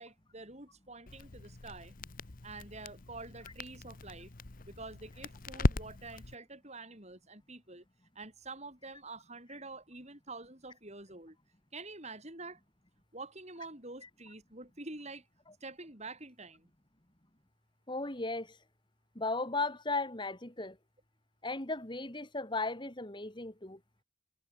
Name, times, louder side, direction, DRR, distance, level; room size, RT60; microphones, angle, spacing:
voice 1, 0.0-1.9 2.4-4.3 4.7-7.8 8.1-11.4 11.7-12.6 13.1-15.3 15.6-16.7, right 3 dB, 30° right, 6.0 m, -47 dB
Crackle, 1.1-6.3, left 2 dB, 40° left, 0.9 m, -38 dB
voice 2, 17.9-18.6 19.2-20.8 21.4-23.8, left 3 dB, 20° left, 2.2 m, -36 dB
head